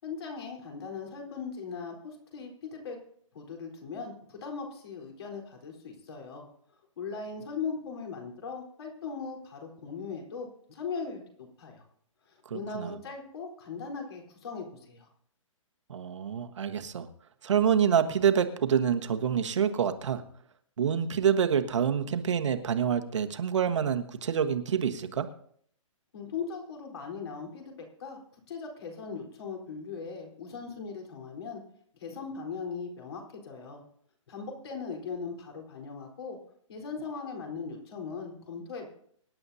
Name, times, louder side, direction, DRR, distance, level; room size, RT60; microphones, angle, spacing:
voice 1, 0.0-3.0 3.3-6.5 7.0-11.8 12.3-15.1 26.1-28.2 28.5-31.6 31.9-33.8 34.3-36.4 36.7-38.9, left 5 dB, 50° left, 1 dB, 4.1 m, -39 dB
voice 2, 12.5-13.0 15.9-17.1 17.4-20.2 20.8-25.3, right 8 dB, 60° right, 7 dB, 1.4 m, -27 dB
24.5 x 10.5 x 2.8 m, 0.64 s
hypercardioid pair, 170°, 17 cm